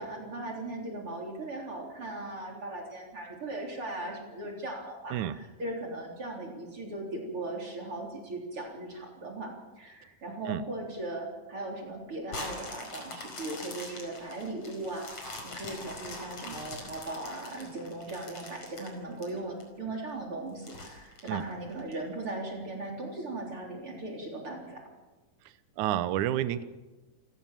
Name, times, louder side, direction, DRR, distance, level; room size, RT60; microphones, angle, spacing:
voice 1, 0.0-24.8, right 2 dB, 40° right, 0 dB, 4.4 m, -38 dB
sound 1, 12.3-19.6 20.1-20.2 20.6-21.9 22.5-22.6, left 2 dB, 50° left, 6.0 m, -43 dB
voice 2, 25.8-26.6, right 12 dB, 75° right, 12 dB, 2.3 m, -29 dB
29.0 x 16.5 x 7.5 m, 1.2 s
omnidirectional pair, 3.7 m